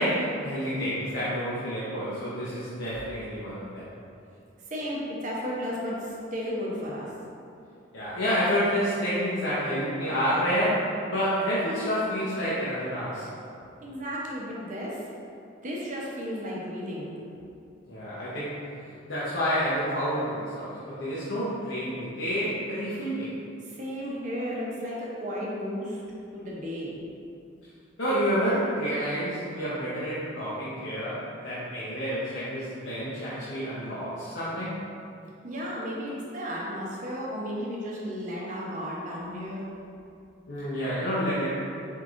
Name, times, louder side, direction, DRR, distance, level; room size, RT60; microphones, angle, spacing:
voice 1, 0.0-3.9 7.9-13.2 17.9-18.6 19.1-23.3 28.0-34.7 40.5-41.5, equal, 80° left, -11 dB, 0.8 m, -29 dB
voice 2, 4.7-7.1 13.8-15.0 15.6-17.1 23.7-26.0 26.3-27.0 35.4-39.6, equal, 40° right, -5 dB, 0.7 m, -34 dB
4.6 x 3.6 x 2.5 m, 2.5 s
head